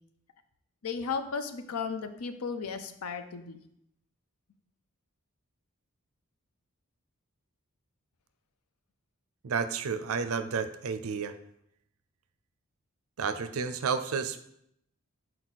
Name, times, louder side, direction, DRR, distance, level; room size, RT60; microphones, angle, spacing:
voice 1, 0.8-3.6, left 5 dB, 90° left, 9 dB, 0.6 m, -35 dB
voice 2, 9.4-11.3 13.2-14.4, right 5 dB, 70° right, 11 dB, 0.5 m, -31 dB
6.2 x 4.4 x 4.1 m, 0.75 s
head